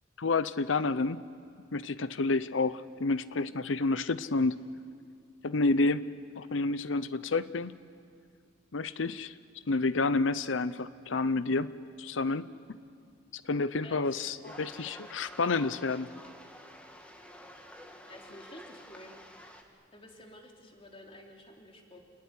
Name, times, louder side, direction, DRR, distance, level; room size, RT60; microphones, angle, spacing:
voice 1, 0.2-1.2 1.7-4.6 5.4-6.1 6.3-7.8 8.7-9.3 9.7-11.7 12.0-12.8 13.3-16.1, left 3 dB, 85° left, 15 dB, 0.7 m, -29 dB
sound 1, 14.4-19.6, equal, 5° left, 2.0 m, -50 dB
voice 2, 18.1-19.1 19.9-22.0, left 1 dB, 30° left, 1 dB, 3.3 m, -51 dB
29.0 x 19.0 x 9.9 m, 2.2 s
head